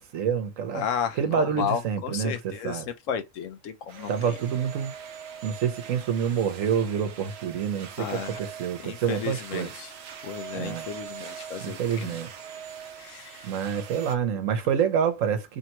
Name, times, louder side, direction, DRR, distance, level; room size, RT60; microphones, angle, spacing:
voice 1, 0.0-0.8 1.2-2.9 4.1-4.9 5.4-9.7 10.5-10.9 11.6-12.3 13.4-15.6, right 7 dB, 80° right, 1.2 m, -27 dB
voice 2, 0.7-4.4 8.0-8.4 8.8-9.9 10.2-12.2 13.0-13.5, left 8 dB, 75° left, 1.0 m, -33 dB
sound 1, 3.9-14.2, right 7 dB, 60° right, 0.9 m, -42 dB
3.3 x 2.9 x 4.4 m
omnidirectional pair, 1.3 m